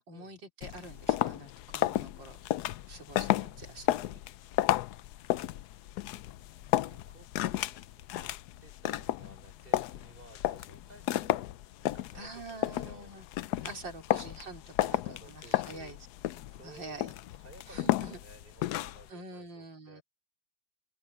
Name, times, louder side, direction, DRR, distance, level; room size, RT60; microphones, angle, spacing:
voice 1, 0.0-2.4 2.9-4.1 12.1-13.3 13.6-15.0 15.3-16.1 16.6-17.1 17.7-18.2 19.1-20.0, right 2 dB, 90° right, 4.7 m, -46 dB
sound 1, 0.6-19.1, left 14 dB, 75° left, 1.0 m, -33 dB
voice 2, 3.2-4.2 6.8-8.4 8.6-11.4 11.8-13.2 14.8-16.0 16.5-20.0, right 2 dB, 30° right, 4.0 m, -56 dB
open air
omnidirectional pair, 2.0 m